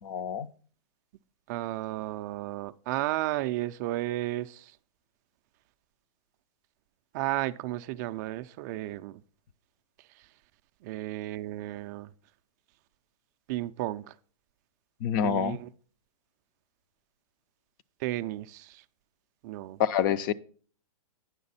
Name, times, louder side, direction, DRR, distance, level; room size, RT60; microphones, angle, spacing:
voice 1, 0.0-0.5 15.0-15.6 19.8-20.3, left 9 dB, 35° left, 0.5 m, -27 dB
voice 2, 1.5-4.7 7.1-9.2 10.8-12.1 13.5-14.1 15.2-15.7 18.0-18.8 19.4-19.8, right 16 dB, 30° right, 0.3 m, -33 dB
9.5 x 6.5 x 4.1 m
hypercardioid pair, 150°, 19 cm